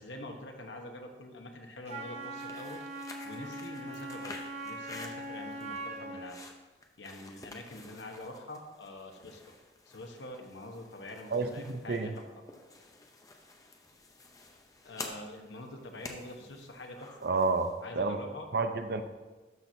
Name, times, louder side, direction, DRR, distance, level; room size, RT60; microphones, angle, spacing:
voice 1, 0.0-2.8 3.2-6.4 7.0-9.4 9.9-12.2 14.8-17.1 17.8-18.5, left 1 dB, 80° left, 3 dB, 1.1 m, -45 dB
Wind instrument woodwind instrument, 1.8-6.4, right 1 dB, 40° right, 1.1 m, -41 dB
sound 1, 2.2-17.8, left 2 dB, 20° left, 0.7 m, -50 dB
voice 2, 11.3-12.1 17.2-18.2 18.5-19.0, right 3 dB, 55° right, 7 dB, 0.6 m, -30 dB
12.5 x 5.9 x 2.7 m, 1.2 s
head